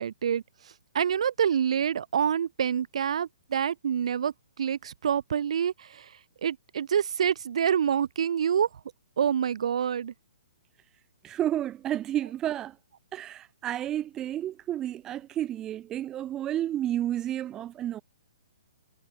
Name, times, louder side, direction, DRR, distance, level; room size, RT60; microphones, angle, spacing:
voice 1, 0.0-8.7 9.2-10.1, right 8 dB, 60° right, 5.1 m, -27 dB
voice 2, 11.2-12.8 13.1-18.0, right 12 dB, 15° right, 2.4 m, -31 dB
hypercardioid pair, 165°, 4 cm